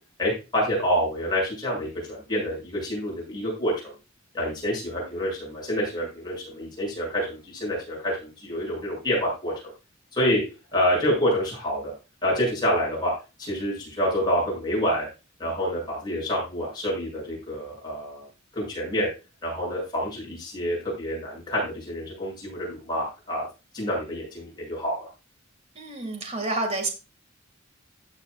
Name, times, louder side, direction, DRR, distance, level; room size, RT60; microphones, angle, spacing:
voice 1, 0.2-3.9 4.3-9.7 10.1-10.4 10.7-11.9 12.2-13.1 13.4-15.1 15.4-18.3 18.5-19.1 19.4-23.4 23.7-25.1, equal, 20° left, -4 dB, 7.3 m, -27 dB
voice 2, 25.8-26.9, right 2 dB, 30° right, 5 dB, 2.2 m, -29 dB
15.5 x 8.2 x 2.5 m, 0.29 s
head